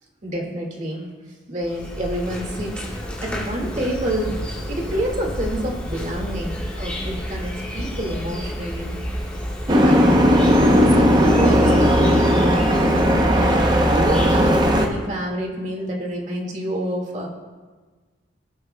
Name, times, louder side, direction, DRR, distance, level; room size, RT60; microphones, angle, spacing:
voice 1, 0.2-1.1 1.5-2.8 3.2-4.4 4.7-9.0 9.7-12.8 13.3-17.3, right 1 dB, 35° right, -1 dB, 1.9 m, -28 dB
Insect, 1.6-14.9, equal, 5° left, 2.2 m, -28 dB
Boat Water vehicle, 9.7-14.9, equal, 20° right, 0.7 m, -17 dB
17.5 x 8.7 x 2.2 m, 1.4 s
head